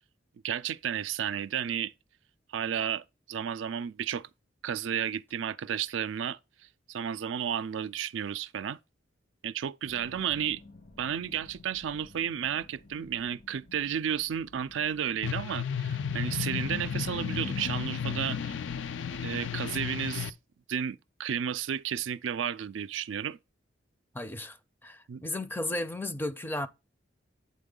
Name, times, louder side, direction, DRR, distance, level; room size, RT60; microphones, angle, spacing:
voice 1, 0.4-1.9 2.5-4.3 4.6-6.4 6.9-8.8 9.4-10.6 11.0-18.6 19.2-20.3 20.7-23.4 25.1-25.2, right 8 dB, 85° right, 0.4 m, -32 dB
sound 1, 9.8-15.6, left 2 dB, 55° left, 1.0 m, -54 dB
sound 2, 15.2-20.3, left 7 dB, 75° left, 0.5 m, -33 dB
voice 2, 24.1-24.6 24.8-26.7, left 1 dB, 10° left, 0.5 m, -34 dB
8.6 x 3.6 x 3.8 m
head